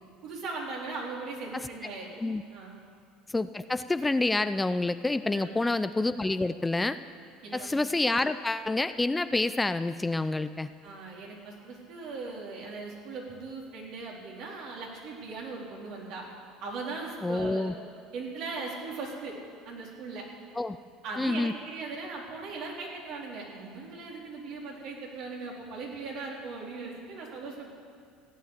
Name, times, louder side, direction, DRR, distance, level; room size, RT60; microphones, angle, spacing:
voice 1, 0.2-2.1 2.5-2.8 5.3-5.5 7.4-7.7 10.8-16.2 16.6-17.7 18.1-19.4 19.6-20.2 21.0-27.7, right 3 dB, 65° right, -2 dB, 3.9 m, -39 dB
voice 2, 3.3-7.0 7.5-10.7 17.2-17.7 20.6-20.8 21.2-21.5, left 2 dB, 15° left, 12 dB, 0.5 m, -28 dB
16.0 x 9.5 x 8.3 m, 2.4 s
supercardioid pair, 90°, 0 cm